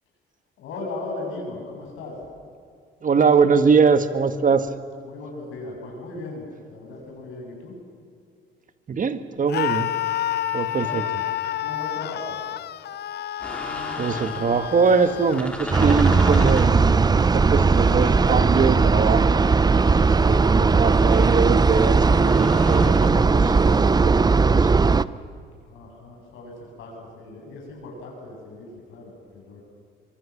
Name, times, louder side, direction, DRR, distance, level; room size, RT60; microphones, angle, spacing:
voice 1, 0.6-2.2 5.0-7.8 10.7-11.0 11.6-12.4 25.6-29.6, left 2 dB, 85° left, 0 dB, 7.7 m, -37 dB
voice 2, 3.0-4.7 8.9-9.9 10.5-11.0 14.0-19.4 19.8-24.7, right 5 dB, 40° right, 10 dB, 1.6 m, -22 dB
Screaming, 9.5-15.4, left 12 dB, 55° left, 0.5 m, -29 dB
sound 1, 13.4-23.9, left 1 dB, 5° left, 3.7 m, -37 dB
sound 2, 15.7-25.0, right 4 dB, 20° right, 0.6 m, -18 dB
24.0 x 23.5 x 7.3 m, 2.3 s
cardioid pair, 90°, 20 cm